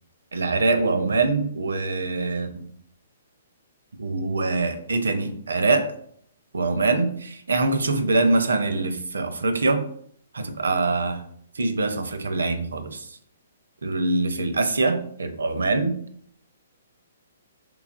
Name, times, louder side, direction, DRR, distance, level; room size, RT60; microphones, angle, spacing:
voice 1, 0.3-2.5 4.0-5.9 6.5-9.8 10.3-11.2 11.6-13.1 13.8-16.0, right 3 dB, 80° right, 8 dB, 0.6 m, -24 dB
4.7 x 3.4 x 2.5 m, 0.65 s
hypercardioid pair, 130°, 0 cm